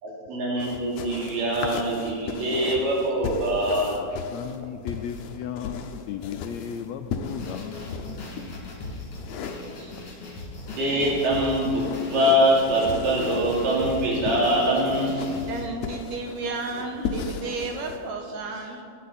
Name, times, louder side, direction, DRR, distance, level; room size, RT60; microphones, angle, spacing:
voice 1, 0.0-4.0 9.8-9.9 10.8-15.2, equal, 85° right, -4 dB, 4.3 m, -23 dB
sound 1, 0.6-8.4 9.1-10.2 10.6-18.0, left 5 dB, 70° left, 1.9 m, -36 dB
voice 2, 4.3-8.1, left 9 dB, 90° left, 6 dB, 1.5 m, -35 dB
sound 2, 7.3-15.6, left 2 dB, 50° left, 3.4 m, -39 dB
voice 3, 15.0-18.8, right 3 dB, 65° right, 3 dB, 2.3 m, -33 dB
21.5 x 9.7 x 4.3 m, 2.4 s
omnidirectional pair, 3.7 m